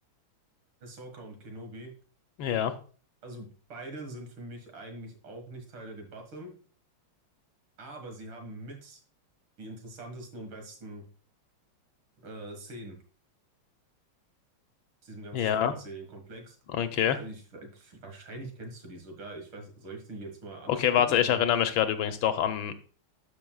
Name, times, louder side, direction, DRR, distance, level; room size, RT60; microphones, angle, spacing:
voice 1, 0.8-1.9 3.2-6.5 7.8-9.0 9.6-11.0 12.2-13.0 15.0-16.6 17.2-21.4, right 2 dB, 75° right, 3 dB, 2.6 m, -43 dB
voice 2, 2.4-2.7 15.3-15.7 16.7-17.2 20.7-22.7, left 10 dB, 75° left, 9 dB, 1.5 m, -25 dB
12.0 x 6.2 x 2.3 m, 0.39 s
omnidirectional pair, 2.3 m